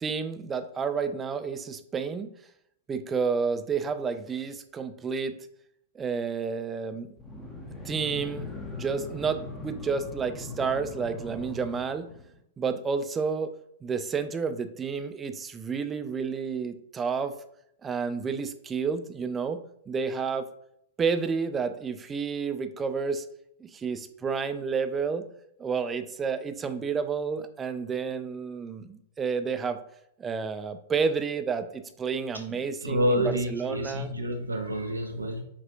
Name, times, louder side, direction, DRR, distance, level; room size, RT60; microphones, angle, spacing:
voice 1, 0.0-2.3 2.9-5.4 6.0-7.1 7.8-12.1 12.6-13.5 13.8-17.4 17.8-20.5 21.0-23.2 23.6-25.2 25.6-29.8 30.2-33.2 33.5-34.1, right 5 dB, 20° right, 9 dB, 0.4 m, -30 dB
sound 1, 7.2-12.4, left 2 dB, 10° left, 0.7 m, -40 dB
voice 2, 32.8-35.4, equal, 80° right, 4 dB, 0.7 m, -28 dB
5.5 x 2.4 x 2.8 m, 0.73 s
figure-of-eight pair, 100°, 0 cm